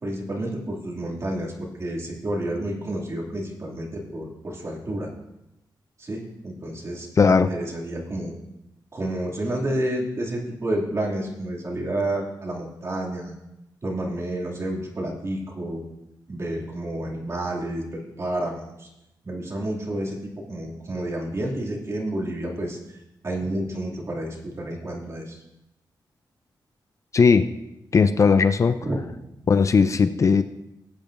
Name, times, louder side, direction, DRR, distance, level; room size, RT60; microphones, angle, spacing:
voice 1, 0.0-5.1 6.0-8.3 8.9-13.3 13.8-15.8 16.3-18.9 19.2-23.0 23.2-25.4 28.8-29.0, right 1 dB, 35° right, -2 dB, 2.4 m, -30 dB
voice 2, 7.2-7.5 27.1-27.5 27.9-28.8 29.5-30.4, left 5 dB, 40° left, 11 dB, 0.4 m, -18 dB
18.5 x 8.8 x 2.6 m, 0.90 s
wide cardioid pair, 115°, 8 cm